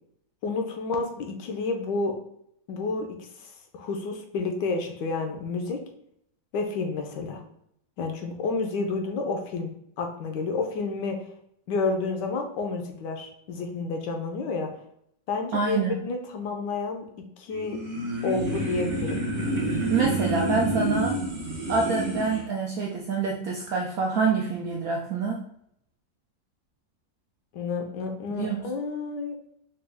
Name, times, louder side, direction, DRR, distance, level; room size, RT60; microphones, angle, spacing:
voice 1, 0.4-2.2 2.7-5.8 6.5-7.4 8.0-9.7 10.0-11.2 11.7-14.7 15.3-17.0 17.4-17.8 18.2-19.2 27.5-29.4, left 3 dB, 75° left, 3 dB, 1.1 m, -30 dB
voice 2, 15.5-16.0 19.9-21.2 21.7-25.4 28.3-28.6, right 4 dB, 75° right, -1 dB, 0.8 m, -26 dB
sound 1, 17.5-22.4, right 1 dB, 45° right, 0.5 m, -28 dB
4.2 x 2.2 x 3.3 m, 0.72 s
omnidirectional pair, 2.0 m